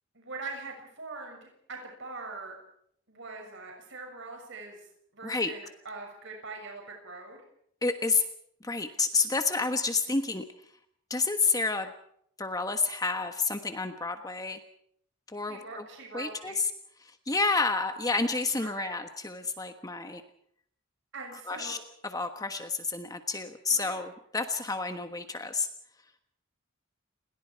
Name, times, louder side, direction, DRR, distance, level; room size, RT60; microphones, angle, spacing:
voice 1, 0.1-2.6 3.1-4.9 5.1-7.4 15.5-16.5 18.6-18.9 21.1-21.8 23.7-23.9, right 3 dB, 60° right, 2 dB, 6.7 m, -42 dB
voice 2, 5.2-5.5 7.8-8.2 8.6-10.4 11.1-11.9 12.4-14.6 15.3-15.9 16.1-16.7 17.0-20.2 21.5-21.8 22.0-25.7, left 4 dB, 15° left, 7 dB, 1.3 m, -29 dB
30.0 x 21.0 x 4.7 m, 0.67 s
head